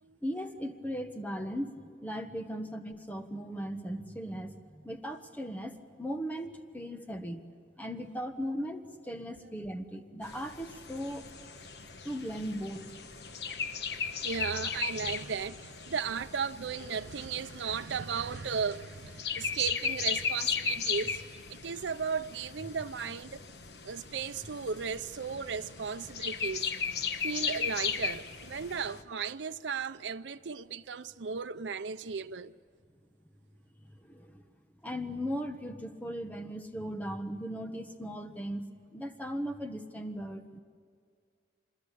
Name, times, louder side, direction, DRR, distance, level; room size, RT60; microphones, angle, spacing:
voice 1, 0.2-7.4 7.8-11.3 12.0-12.9 34.1-34.4 34.8-38.7 38.9-40.6, equal, 10° left, 1.3 m, -38 dB
sound 1, 10.2-29.0, left 6 dB, 65° left, 1.2 m, -37 dB
voice 2, 14.2-23.4 23.8-26.7 27.2-32.5, right 6 dB, 90° right, 0.6 m, -35 dB
25.5 x 21.5 x 8.6 m
head